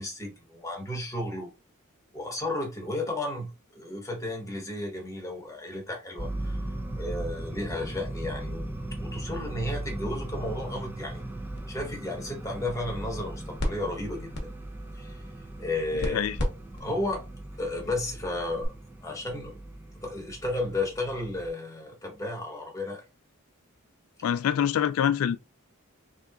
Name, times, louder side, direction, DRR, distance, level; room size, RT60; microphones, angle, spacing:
voice 1, 0.0-1.5 2.1-6.6 7.0-8.7 9.0-11.2 11.7-14.3 14.9-15.2 15.6-16.2 16.8-17.2 17.6-18.7 19.0-19.6 20.0-23.0, left 2 dB, 15° left, 1.0 m, -33 dB
sound 1, 6.2-21.5, right 1 dB, 10° right, 0.4 m, -38 dB
sound 2, 11.1-18.7, left 1 dB, 55° left, 0.9 m, -38 dB
voice 2, 16.0-16.4 24.2-25.4, left 9 dB, 85° left, 0.3 m, -25 dB
3.6 x 2.7 x 2.3 m
head